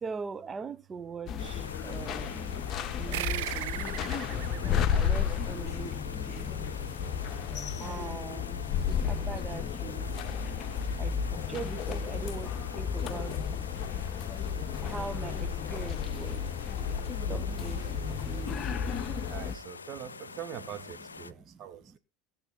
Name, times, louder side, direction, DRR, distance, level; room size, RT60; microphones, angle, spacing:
voice 1, 0.0-2.4 3.0-3.9 4.9-6.5 7.8-8.5 8.8-10.1 11.0-11.2 11.5-13.4 14.8-16.4 17.1-18.7 21.2-21.6, right 5 dB, 30° right, 0.7 m, -41 dB
sound 1, 1.3-19.6, left 7 dB, 45° left, 0.9 m, -33 dB
sound 2, 1.4-21.3, left 4 dB, 90° left, 0.6 m, -46 dB
sound 3, 3.1-6.1, right 16 dB, 65° right, 0.8 m, -38 dB
voice 2, 19.3-22.0, right 10 dB, 45° right, 2.3 m, -43 dB
18.5 x 6.9 x 3.8 m
hypercardioid pair, 75°, 0 cm